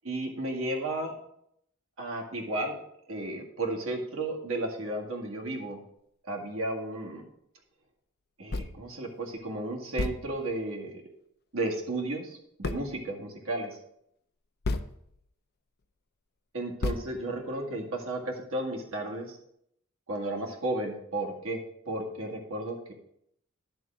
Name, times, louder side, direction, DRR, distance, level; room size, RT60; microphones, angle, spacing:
voice 1, 0.1-1.1 2.0-2.8 3.1-5.8 6.3-7.2 8.4-10.9 11.5-13.7 16.5-19.4 20.1-21.6 21.9-22.9, right 2 dB, 70° right, 0 dB, 1.9 m, -33 dB
sound 1, 8.5-8.9 9.4-9.5 10.0-10.7 12.6-13.1 14.6-15.3 15.8-15.9 16.8-17.6, left 2 dB, 50° left, 0.5 m, -33 dB
11.0 x 3.7 x 7.2 m, 0.73 s
head